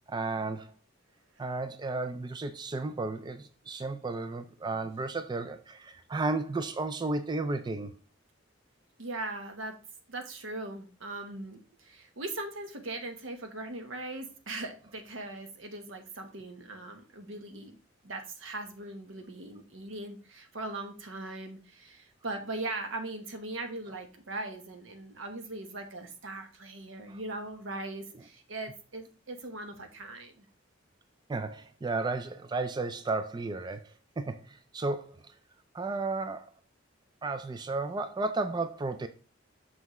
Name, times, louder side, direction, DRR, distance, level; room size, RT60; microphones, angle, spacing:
voice 1, 0.1-0.7 1.4-8.0 27.1-27.2 31.3-35.2 35.7-36.5 37.2-39.1, right 3 dB, 20° right, 0.4 m, -33 dB
voice 2, 9.0-9.8 10.1-17.8 18.0-30.5, right 2 dB, 85° right, 1.1 m, -40 dB
6.2 x 5.8 x 3.0 m
head